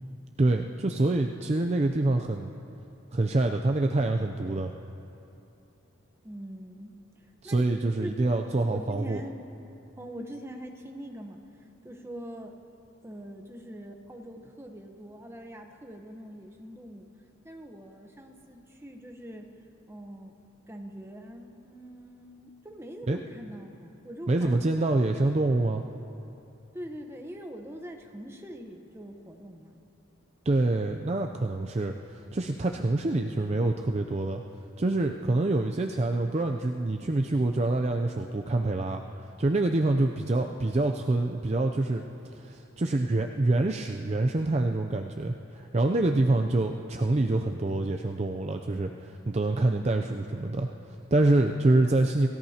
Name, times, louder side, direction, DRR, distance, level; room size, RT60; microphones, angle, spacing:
voice 1, 0.4-2.5 3.1-4.7 7.4-9.2 23.1-23.2 24.3-25.8 30.5-34.4 34.8-42.0 42.3-52.3, right 2 dB, 30° right, 4 dB, 0.5 m, -26 dB
voice 2, 6.2-7.7 8.0-8.3 8.7-9.4 10.0-11.4 11.8-12.6 13.0-17.1 17.4-19.6 19.9-20.3 20.7-25.0 26.7-29.8, equal, 10° right, 4 dB, 0.9 m, -43 dB
28.0 x 16.5 x 2.9 m, 2.8 s
head